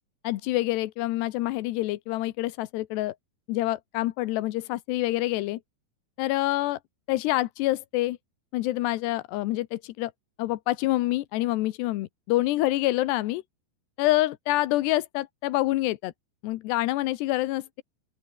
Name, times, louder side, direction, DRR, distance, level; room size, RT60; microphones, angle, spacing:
voice 1, 0.2-3.1 3.5-5.6 6.2-6.8 7.1-8.2 8.5-10.1 10.4-13.4 14.0-16.1 16.4-17.8, left 17 dB, 80° left, 3.0 m, -27 dB
open air
omnidirectional pair, 4.9 m